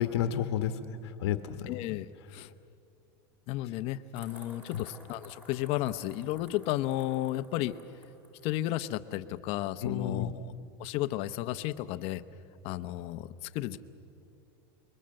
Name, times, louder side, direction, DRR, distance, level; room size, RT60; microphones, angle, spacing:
voice 1, 0.0-1.7 4.7-4.8 9.8-10.3, left 9 dB, 80° left, 9 dB, 1.3 m, -31 dB
voice 2, 1.7-2.5 3.5-7.8 8.4-10.5 10.8-12.2 12.6-13.8, left 15 dB, 45° left, 11 dB, 0.9 m, -33 dB
sound 1, 4.2-8.6, equal, 10° right, 3.3 m, -54 dB
28.0 x 22.5 x 7.8 m, 2.5 s
supercardioid pair, 145°, 14 cm